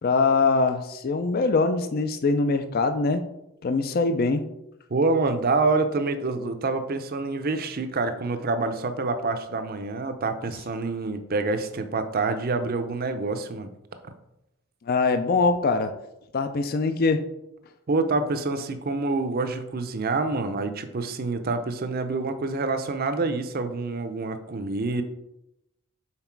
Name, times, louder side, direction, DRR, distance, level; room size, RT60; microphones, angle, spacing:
voice 1, 0.0-3.3 3.6-4.4 14.9-15.9 16.3-17.2, left 3 dB, 40° left, 9 dB, 0.4 m, -23 dB
voice 2, 4.9-13.7 17.9-25.0, right 3 dB, 40° right, 8 dB, 0.5 m, -27 dB
5.8 x 4.0 x 4.5 m, 0.87 s
head